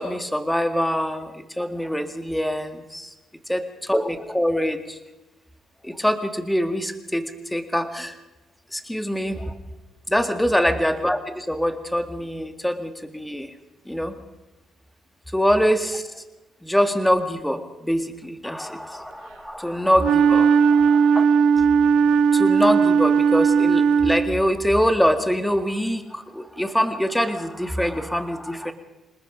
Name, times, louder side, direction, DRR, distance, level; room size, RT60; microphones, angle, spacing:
voice 1, 0.0-3.1 3.5-5.0 5.8-8.2 8.7-9.5 10.1-13.5 13.9-14.1 15.3-16.2 16.6-21.3 22.3-28.7, equal, 5° left, 7 dB, 2.1 m, -24 dB
Wind instrument woodwind instrument, 20.0-24.5, right 6 dB, 90° right, 0.9 m, -17 dB
27.0 x 19.5 x 5.2 m, 1.1 s
cardioid pair, 90°, 0 cm